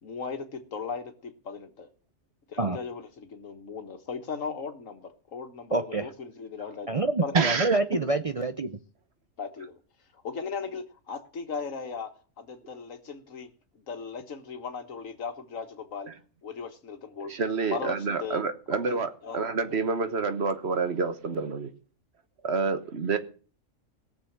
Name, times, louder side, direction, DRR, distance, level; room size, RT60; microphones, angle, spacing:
voice 1, 0.0-1.9 2.5-6.9 7.2-7.5 9.4-9.7 10.2-12.1 12.4-13.5 13.9-16.1 16.4-17.4 17.6-18.4 18.7-19.4, left 5 dB, 80° left, 1.9 m, -37 dB
voice 2, 5.7-6.1 6.9-8.8, right 3 dB, 35° right, 0.6 m, -26 dB
voice 3, 7.3-7.8 17.3-21.7 22.4-23.2, right 4 dB, 55° right, 1.4 m, -28 dB
18.0 x 7.1 x 7.2 m
omnidirectional pair, 1.3 m